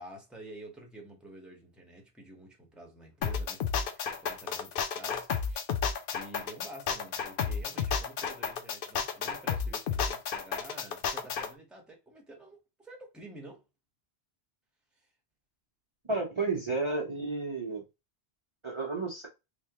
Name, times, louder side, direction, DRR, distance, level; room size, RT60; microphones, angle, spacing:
voice 1, 0.0-5.7 6.0-13.6 14.9-15.1, right 1 dB, ahead, 1.0 m, -49 dB
sound 1, 3.2-11.5, left 6 dB, 65° left, 0.7 m, -32 dB
voice 2, 16.1-17.8 18.6-19.3, right 3 dB, 30° right, 0.8 m, -32 dB
3.3 x 3.0 x 2.9 m
omnidirectional pair, 1.1 m